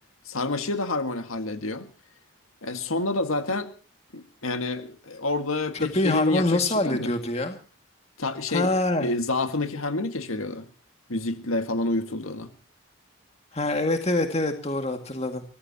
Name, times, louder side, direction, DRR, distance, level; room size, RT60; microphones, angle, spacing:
voice 1, 0.2-1.9 2.6-3.7 4.1-7.1 8.2-8.7 9.0-10.7 11.1-12.5, left 2 dB, 85° left, 8 dB, 1.8 m, -28 dB
voice 2, 5.7-7.6 8.5-9.1 13.5-15.4, left 2 dB, 30° left, 5 dB, 2.1 m, -25 dB
24.0 x 18.0 x 2.9 m, 0.36 s
head